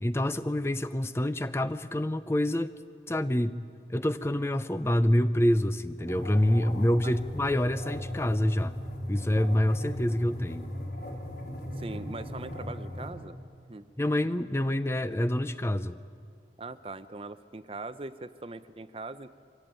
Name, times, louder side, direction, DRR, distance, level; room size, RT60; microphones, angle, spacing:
voice 1, 0.0-2.7 3.1-3.6 3.9-8.7 9.1-10.7 14.0-16.0, left 1 dB, 15° left, 12 dB, 0.5 m, -27 dB
sound 1, 6.1-13.1, left 1 dB, 70° left, 4.4 m, -38 dB
voice 2, 11.8-13.4 13.7-13.9 16.6-19.3, right 3 dB, 30° right, 13 dB, 0.6 m, -41 dB
23.5 x 16.5 x 8.9 m, 2.2 s
head